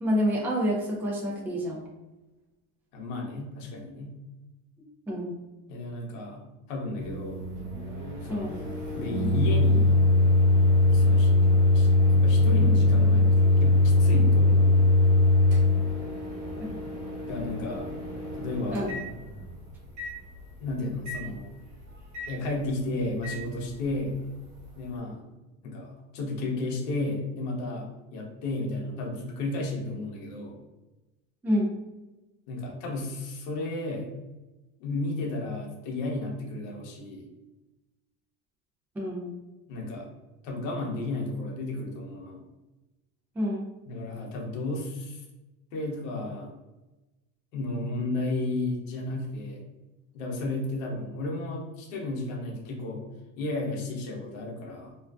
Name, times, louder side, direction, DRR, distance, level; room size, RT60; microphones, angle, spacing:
voice 1, 0.0-1.8 5.1-5.3 8.3-8.6 16.6-16.7 18.7-18.9 31.4-31.7 39.0-39.3 43.4-43.7, equal, 5° right, -3 dB, 0.3 m, -28 dB
voice 2, 2.9-4.2 5.7-7.4 8.2-8.5 8.9-10.0 10.9-11.3 11.7-13.3 13.6-14.9 17.3-17.9 18.4-18.8 20.6-21.5 22.3-24.2 24.8-25.2 25.6-30.6 32.5-34.1 34.8-37.3 39.7-40.1 40.4-42.4 43.9-45.3 45.7-46.5 47.5-49.6 50.1-53.0 53.4-54.9, left 2 dB, 80° left, 0 dB, 0.8 m, -33 dB
Microwave oven, 7.0-19.5 20.0-20.1 21.1-21.2 22.1-22.3 23.2-23.4, left 2 dB, 50° right, 1.0 m, -22 dB
2.4 x 2.3 x 2.3 m, 1.1 s
supercardioid pair, 130°, 38 cm